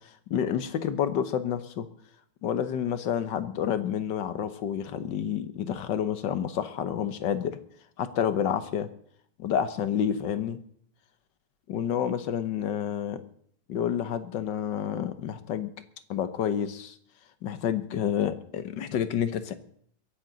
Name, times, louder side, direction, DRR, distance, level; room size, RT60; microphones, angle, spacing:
voice 1, 0.3-1.9 2.4-7.6 8.0-8.9 9.4-10.6 11.7-13.2 13.7-15.7 16.1-17.0 17.4-19.5, left 9 dB, 80° left, 11 dB, 1.6 m, -29 dB
23.0 x 10.5 x 4.0 m, 0.62 s
omnidirectional pair, 1.9 m